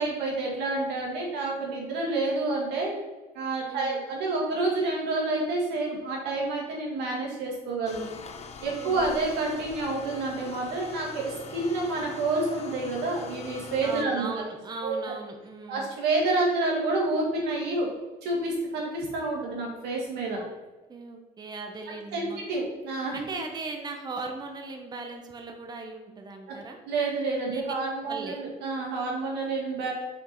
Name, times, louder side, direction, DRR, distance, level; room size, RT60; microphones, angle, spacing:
voice 1, 0.0-2.9 3.4-8.1 8.6-14.3 14.8-14.9 15.7-17.9 18.2-20.4 22.1-23.4 26.5-26.6 26.9-29.9, right 2 dB, 90° right, -1 dB, 1.8 m, -29 dB
voice 2, 3.7-4.0 8.8-9.2 13.8-15.9 20.3-20.5 20.9-22.4 23.1-26.8 27.5-27.8 28.1-28.4, right 3 dB, 25° right, 3 dB, 0.8 m, -38 dB
sound 1, 7.9-14.1, left 5 dB, 40° left, 0.6 m, -42 dB
5.3 x 4.5 x 4.4 m, 1.2 s
cardioid pair, 110°, 17 cm